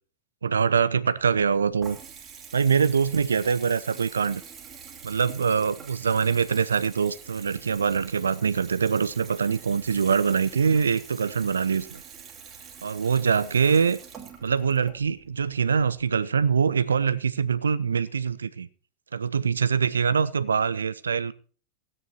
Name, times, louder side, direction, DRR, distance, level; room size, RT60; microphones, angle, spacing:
voice 1, 0.4-2.0 2.5-4.4 5.0-12.0 12.8-14.0 14.4-18.7 19.1-21.3, right 6 dB, 70° right, 17 dB, 0.7 m, -24 dB
Water tap faucet / Bathtub (filling or washing) / Trickle dribble, 1.2-16.0, right 7 dB, 25° right, 2.6 m, -46 dB
16.5 x 9.7 x 4.5 m, 0.39 s
figure-of-eight pair, 90°, 0 cm